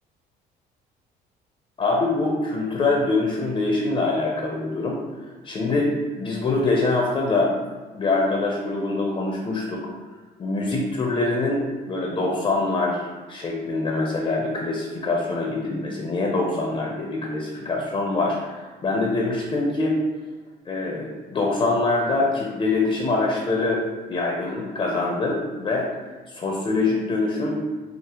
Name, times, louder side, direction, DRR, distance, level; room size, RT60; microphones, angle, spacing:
voice 1, 1.8-5.0 5.4-5.9 6.2-7.6 7.9-9.9 10.4-20.0 20.7-23.8 24.1-25.9 26.3-27.6, left 3 dB, 35° left, -1 dB, 0.5 m, -24 dB
4.8 x 2.0 x 2.9 m, 1.3 s
cardioid pair, 110°, 17 cm